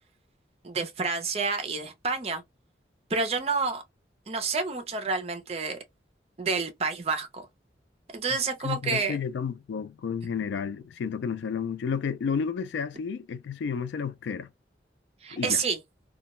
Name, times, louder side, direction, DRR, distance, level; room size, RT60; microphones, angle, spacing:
voice 1, 0.6-2.4 3.1-3.8 4.3-5.8 6.4-7.5 8.1-9.2 15.2-15.8, right 4 dB, 35° right, 0.5 m, -29 dB
voice 2, 8.6-14.5 15.3-15.6, left 6 dB, 80° left, 0.3 m, -31 dB
2.2 x 2.1 x 2.8 m
head